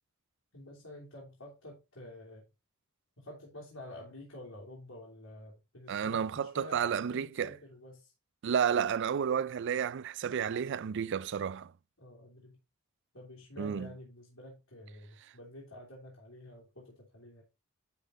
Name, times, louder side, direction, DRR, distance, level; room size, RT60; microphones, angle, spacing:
voice 1, 0.5-2.4 3.2-8.1 12.0-12.6 13.1-17.4, left 1 dB, 75° left, 2.7 m, -49 dB
voice 2, 5.9-7.6 8.4-11.7 13.6-13.9, right 7 dB, 55° right, 0.4 m, -31 dB
10.0 x 4.1 x 4.1 m
head